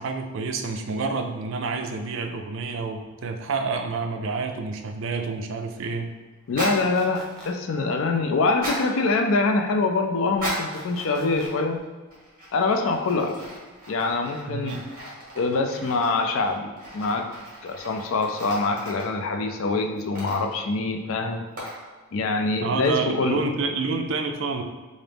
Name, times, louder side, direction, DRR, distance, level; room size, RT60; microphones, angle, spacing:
voice 1, 0.0-6.1 14.5-14.9 22.6-24.6, right 4 dB, 55° right, 5 dB, 0.4 m, -28 dB
voice 2, 6.5-11.8 12.5-13.5 13.9-14.8 15.3-17.3 17.6-21.4 22.1-23.4, left 3 dB, 65° left, 5 dB, 0.4 m, -24 dB
sound 1, 6.5-6.9 8.5-8.9 10.3-10.8 11.3-11.8 12.1-19.2 20.0-20.7 21.6-21.9, right 1 dB, 40° right, 1.1 m, -36 dB
sound 2, 6.7-7.5 10.7-11.5, right 1 dB, 5° left, 0.6 m, -43 dB
3.8 x 2.6 x 3.4 m, 1.3 s
head